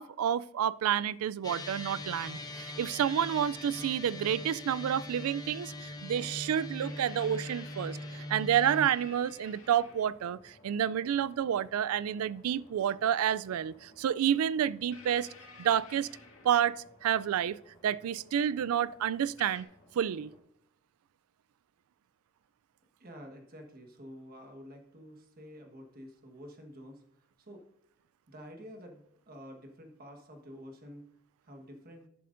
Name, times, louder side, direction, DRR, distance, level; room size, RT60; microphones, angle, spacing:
voice 1, 0.0-15.3 15.6-16.1 16.4-16.8 17.0-17.6 17.8-19.7 20.0-20.3, right 9 dB, 80° right, 0.3 m, -29 dB
sound 1, 1.4-8.9, left 1 dB, 20° left, 0.8 m, -41 dB
sound 2, 1.8-20.4, left 1 dB, 50° left, 2.0 m, -60 dB
sound 3, 5.4-5.5 6.8-10.3 11.6-11.7 13.5-13.6 14.9-17.0 18.4-18.5 19.4-19.6, left 4 dB, 75° left, 1.9 m, -53 dB
voice 2, 23.0-27.0 27.4-27.6 28.3-31.0 31.4-32.1, equal, 45° right, 1.4 m, -49 dB
11.0 x 10.0 x 2.6 m
head